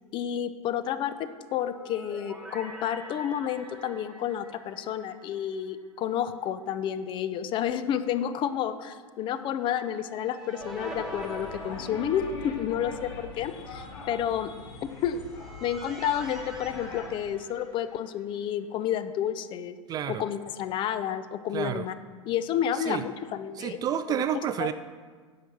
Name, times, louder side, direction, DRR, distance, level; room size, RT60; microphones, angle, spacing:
voice 1, 0.1-14.5 15.0-15.2 15.6-19.8 20.1-21.9 22.2-24.2 24.6-24.7, left 9 dB, 30° left, 12 dB, 0.6 m, -30 dB
sound 1, 1.5-5.8 6.1-6.2 9.7-12.8 14.9-18.2, right 1 dB, 5° right, 2.0 m, -44 dB
sound 2, 10.6-17.1, left 4 dB, 55° left, 1.7 m, -42 dB
voice 2, 19.9-20.2 21.5-21.9 22.7-23.0 23.6-24.7, right 9 dB, 25° right, 11 dB, 0.4 m, -30 dB
10.0 x 6.6 x 5.9 m, 1.5 s
figure-of-eight pair, 90°, 17 cm